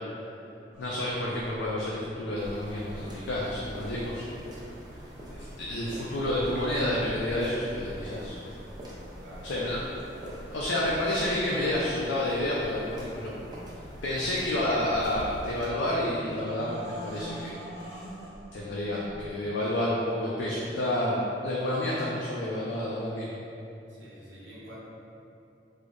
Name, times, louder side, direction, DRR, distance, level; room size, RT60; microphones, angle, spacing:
sound 1, 0.7-19.3, right 1 dB, 5° right, 0.9 m, -47 dB
voice 1, 0.8-4.3 5.3-8.4 9.4-9.8 10.5-13.3 14.0-17.6 18.5-23.4, left 1 dB, 80° left, -5 dB, 0.4 m, -29 dB
sound 2, 2.4-15.7, equal, 25° right, 0.5 m, -44 dB
voice 2, 9.2-9.8 23.9-24.8, equal, 85° right, -8 dB, 0.8 m, -48 dB
3.3 x 2.0 x 3.6 m, 2.8 s
head